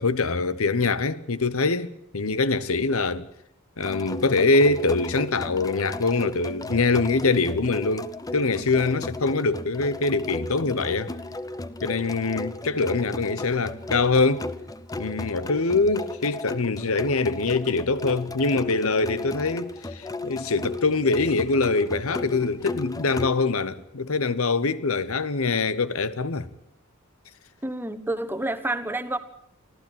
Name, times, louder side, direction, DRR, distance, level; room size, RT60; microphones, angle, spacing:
voice 1, 0.0-3.3 3.8-11.1 11.8-14.5 15.0-26.5, left 3 dB, 70° left, 1.0 m, -24 dB
sound 1, 3.8-23.3, left 2 dB, 15° left, 0.8 m, -35 dB
voice 2, 27.6-29.2, right 2 dB, 10° right, 1.2 m, -29 dB
24.5 x 15.0 x 8.8 m
head